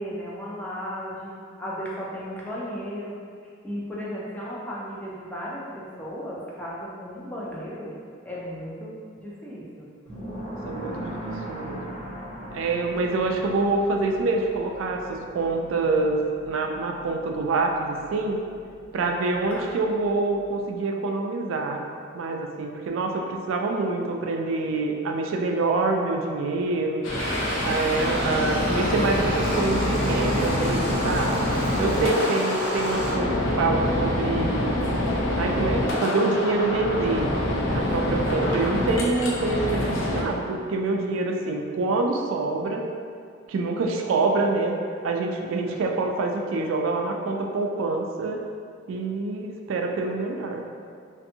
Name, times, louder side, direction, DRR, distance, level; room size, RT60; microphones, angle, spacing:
voice 1, 0.0-3.2 3.6-8.0 8.2-9.9 31.9-32.3 45.7-45.8, equal, 10° left, -7 dB, 0.4 m, -35 dB
sound 1, 10.1-20.6, equal, 55° left, 1.2 m, -40 dB
voice 2, 10.5-11.8 12.5-18.4 18.9-21.8 22.1-27.0 27.6-31.4 31.8-34.7 35.4-37.3 37.7-42.9 43.5-44.7 45.0-48.4 48.9-50.6, right 3 dB, 85° right, 2 dB, 0.3 m, -26 dB
sound 2, 27.0-40.2, left 1 dB, 75° left, 0.5 m, -26 dB
sound 3, 27.2-33.1, equal, 30° right, 0.7 m, -32 dB
2.6 x 2.5 x 2.6 m, 2.2 s
head